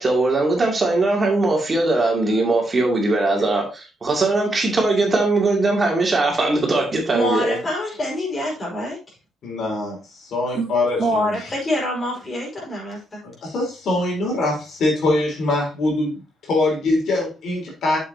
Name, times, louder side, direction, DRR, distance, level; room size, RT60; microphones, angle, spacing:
voice 1, 0.0-7.5, right 2 dB, 35° right, 2.7 m, -20 dB
voice 2, 7.1-9.0 10.5-10.7 11.0-13.2, equal, 35° left, 5.0 m, -25 dB
voice 3, 9.4-11.6 13.4-18.0, left 2 dB, 65° left, 4.0 m, -23 dB
8.3 x 7.1 x 2.9 m
cardioid pair, 90°, 0 cm